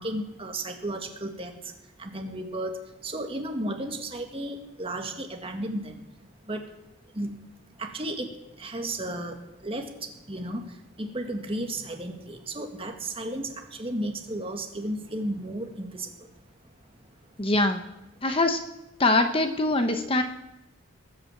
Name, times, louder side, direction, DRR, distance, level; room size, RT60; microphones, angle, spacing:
voice 1, 0.0-1.7 2.0-2.7 3.0-6.0 6.5-6.6 7.2-7.4 7.8-8.3 8.6-9.4 9.6-10.7 11.0-16.1, right 1 dB, 25° right, 4 dB, 1.9 m, -33 dB
voice 2, 17.4-17.8 18.2-18.6 19.0-20.2, left 2 dB, 25° left, 7 dB, 0.9 m, -23 dB
20.5 x 8.8 x 7.4 m, 0.90 s
head